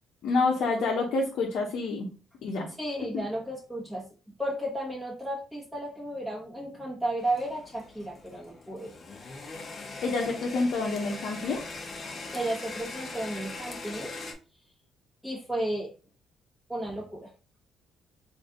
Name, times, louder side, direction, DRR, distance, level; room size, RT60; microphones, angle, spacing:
voice 1, 0.2-2.1 2.4-2.7 10.0-11.6, left 3 dB, 70° left, -1 dB, 0.8 m, -27 dB
voice 2, 2.8-4.0 4.4-9.0 12.3-14.1 15.2-15.9 16.7-17.3, right 1 dB, ahead, -4 dB, 1.2 m, -33 dB
sound 1, 7.2-14.3, left 3 dB, 45° left, 0.8 m, -41 dB
3.2 x 2.6 x 3.6 m, 0.35 s
supercardioid pair, 75°, 0 cm